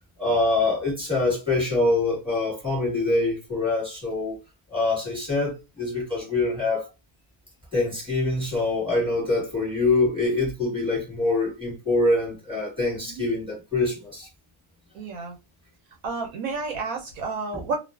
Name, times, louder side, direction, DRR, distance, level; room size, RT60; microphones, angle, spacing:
voice 1, 0.2-4.4 4.7-6.9 7.7-14.3, left 2 dB, 5° right, 1.1 m, -24 dB
voice 2, 14.9-15.4 16.0-17.8, right 4 dB, 70° right, 0.9 m, -31 dB
2.4 x 2.4 x 2.3 m
omnidirectional pair, 1.7 m